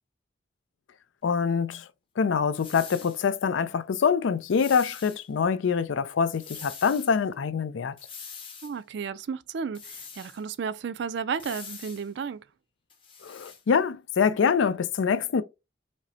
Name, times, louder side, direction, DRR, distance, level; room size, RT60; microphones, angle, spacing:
voice 1, 1.2-1.9 2.2-8.0 13.2-15.4, left 6 dB, 80° left, 0.4 m, -25 dB
sound 1, 2.5-3.2 4.4-5.2 6.4-7.1 8.0-8.7 9.7-10.4 11.4-12.1 12.9-13.6, left 6 dB, 30° left, 0.8 m, -43 dB
voice 2, 8.6-12.4, right 6 dB, 65° right, 0.4 m, -33 dB
5.1 x 2.1 x 2.6 m
head